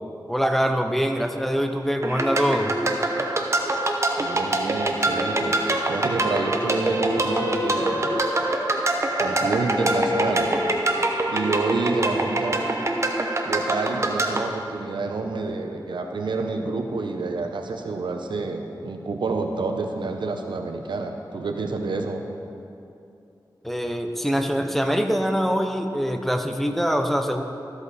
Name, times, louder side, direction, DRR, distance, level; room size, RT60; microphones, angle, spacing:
voice 1, 0.3-2.7 23.6-27.4, equal, 5° left, 4 dB, 0.7 m, -24 dB
sound 1, 2.0-14.4, right 2 dB, 35° right, 0.9 m, -25 dB
voice 2, 4.2-5.6 5.9-8.2 9.2-10.6 11.3-12.7 13.4-22.2, right 3 dB, 85° right, 4 dB, 0.8 m, -28 dB
Wind instrument woodwind instrument, 4.8-8.5 8.8-12.9, left 2 dB, 55° left, 1.2 m, -33 dB
13.5 x 8.1 x 4.1 m, 2.7 s
wide cardioid pair, 75°, 8 cm